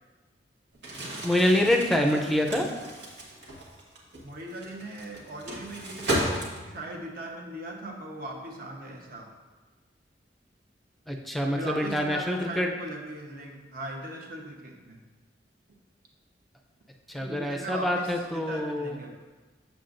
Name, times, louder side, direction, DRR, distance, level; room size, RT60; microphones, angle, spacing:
Crumpling crinkling, 0.7-6.9, right 1 dB, 75° right, 1.4 m, -34 dB
voice 1, 1.2-2.7 11.1-12.7 17.1-19.0, left 1 dB, ahead, 1 dB, 0.5 m, -26 dB
voice 2, 2.1-2.9 4.2-6.2 6.6-9.3 11.5-15.0 17.2-19.1, right 1 dB, 55° right, 1 dB, 1.0 m, -39 dB
7.4 x 7.1 x 2.6 m, 1.3 s
head